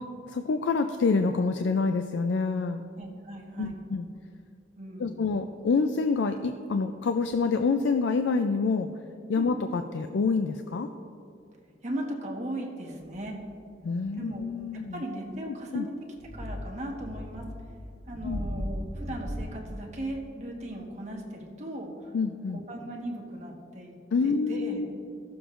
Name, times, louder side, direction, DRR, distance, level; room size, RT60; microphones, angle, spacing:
voice 1, 0.0-2.8 3.6-4.1 5.0-8.9 9.3-10.9 13.8-14.9 15.7-15.9 18.2-18.4 22.1-22.6 24.1-24.9, left 4 dB, 80° left, 7 dB, 0.4 m, -27 dB
voice 2, 3.0-3.8 4.8-5.2 9.3-9.5 11.8-13.4 14.2-14.5 14.7-15.9 16.3-17.4 18.1-22.1 22.5-24.0 24.2-24.9, right 1 dB, 40° right, -1 dB, 1.3 m, -37 dB
sound 1, 13.0-13.3 14.0-14.4 15.4-15.5 16.1-19.4, equal, 5° right, 1.8 m, -37 dB
16.5 x 6.9 x 2.5 m, 2.5 s
head